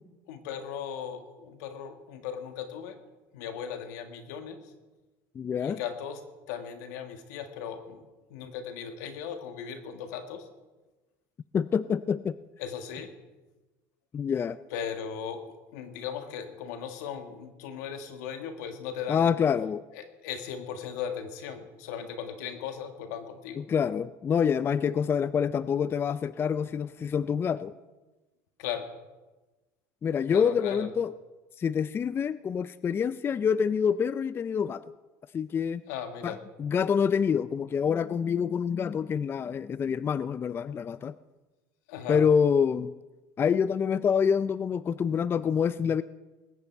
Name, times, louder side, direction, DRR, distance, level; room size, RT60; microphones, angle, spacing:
voice 1, 0.3-3.0 3.3-4.6 5.6-6.2 6.5-8.0 8.3-10.5 12.6-13.1 14.7-19.4 19.9-23.6 28.6-28.9 30.3-30.9 35.9-36.4 41.9-42.2, left 8 dB, 85° left, 7 dB, 1.7 m, -37 dB
voice 2, 5.4-5.8 11.5-12.4 14.1-14.6 19.1-19.8 23.6-27.7 30.0-31.1 31.6-34.8 35.3-35.8 36.2-41.1 42.1-42.9 43.4-46.0, left 7 dB, 25° left, 16 dB, 0.4 m, -26 dB
20.0 x 9.6 x 4.5 m, 1.2 s
supercardioid pair, 115°, 9 cm